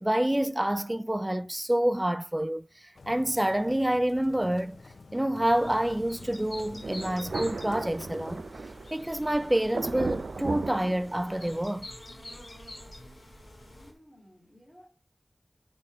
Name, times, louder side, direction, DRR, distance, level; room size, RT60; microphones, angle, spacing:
voice 1, 0.0-2.7 3.1-4.8 5.1-8.4 8.9-11.9, right 1 dB, 15° right, 0.4 m, -27 dB
sound 1, 3.0-8.4, left 3 dB, 80° left, 0.6 m, -49 dB
sound 2, 5.4-13.9, left 1 dB, 50° left, 4.6 m, -47 dB
Thunder, 6.8-11.6, right 3 dB, 85° right, 0.4 m, -36 dB
voice 2, 13.6-14.9, equal, 10° left, 3.0 m, -56 dB
7.0 x 6.8 x 5.3 m
wide cardioid pair, 70°, 0 cm